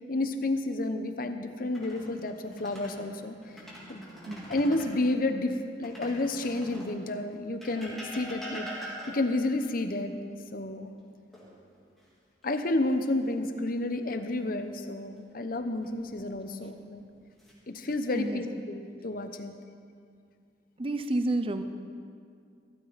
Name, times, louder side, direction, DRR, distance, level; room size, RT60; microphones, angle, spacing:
voice 1, 0.1-3.3 3.9-4.0 4.5-10.1 10.5-10.9 12.4-17.0 17.7-19.5, left 2 dB, 50° left, 8 dB, 0.9 m, -30 dB
sound 1, 1.6-3.0 3.4-5.0 5.8-7.0 7.6-9.4 11.3-12.0 12.4-12.6 15.6-16.2 16.9-17.5, equal, ahead, 3.3 m, -43 dB
voice 2, 18.1-18.8 20.8-21.6, right 2 dB, 30° right, 9 dB, 0.7 m, -31 dB
15.5 x 15.0 x 4.2 m, 2.3 s
head